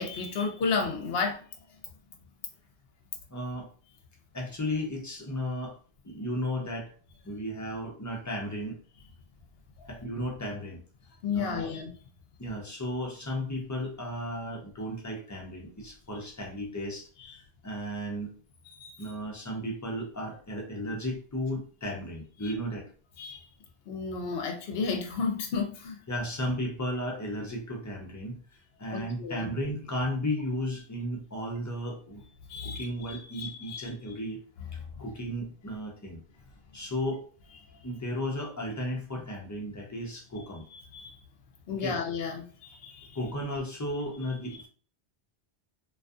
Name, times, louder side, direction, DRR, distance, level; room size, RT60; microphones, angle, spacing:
voice 1, 0.0-1.4 11.2-11.9 18.8-18.9 23.2-23.5 23.9-26.0 28.9-29.5 32.5-33.9 40.7-41.1 41.7-43.2, left 5 dB, 65° left, 3 dB, 0.8 m, -32 dB
voice 2, 3.3-3.7 4.3-5.8 6.0-6.9 7.2-8.8 9.9-10.8 11.3-11.7 12.4-18.3 19.0-22.9 26.1-28.4 28.8-32.2 32.6-34.4 35.0-36.2 36.7-37.3 37.8-40.6 41.7-42.0 43.1-44.7, equal, 30° left, -1 dB, 0.3 m, -34 dB
2.5 x 2.4 x 2.3 m, 0.42 s
omnidirectional pair, 1.1 m